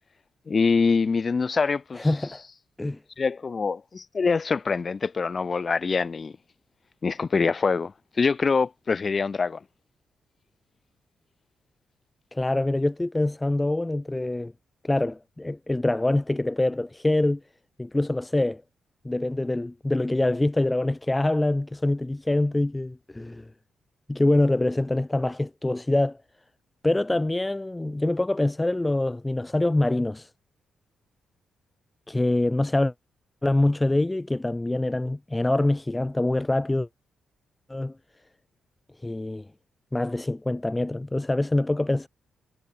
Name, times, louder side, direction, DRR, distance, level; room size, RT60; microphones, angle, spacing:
voice 1, 0.5-2.1 3.2-6.3 7.0-7.9 8.2-9.6, left 4 dB, 35° left, 1.5 m, -24 dB
voice 2, 2.0-2.4 2.8-3.0 12.3-14.5 14.8-17.4 17.8-18.6 19.0-23.5 24.1-26.2 26.8-30.3 32.1-32.9 33.4-36.9 37.7-37.9 39.0-39.5 39.9-42.1, left 2 dB, 10° left, 0.5 m, -25 dB
cardioid pair, 110°, 0 cm